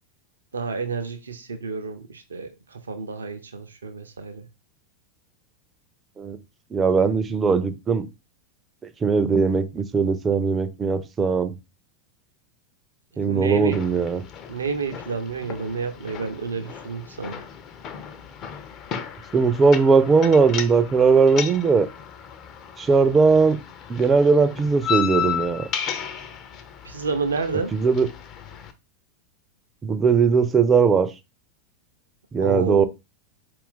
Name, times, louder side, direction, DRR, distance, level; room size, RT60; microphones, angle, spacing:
voice 1, 0.5-4.5 13.3-13.8 14.5-17.4 26.8-27.7 32.4-32.9, right 5 dB, 70° right, 0.5 m, -29 dB
voice 2, 6.7-8.1 9.0-11.5 13.2-14.2 19.3-21.9 22.8-23.6 23.9-25.7 27.7-28.1 29.8-31.1 32.3-32.9, right 5 dB, 20° right, 0.4 m, -19 dB
sound 1, 13.7-28.7, left 8 dB, 35° left, 0.5 m, -34 dB
4.3 x 2.5 x 3.6 m
figure-of-eight pair, 90°, 0 cm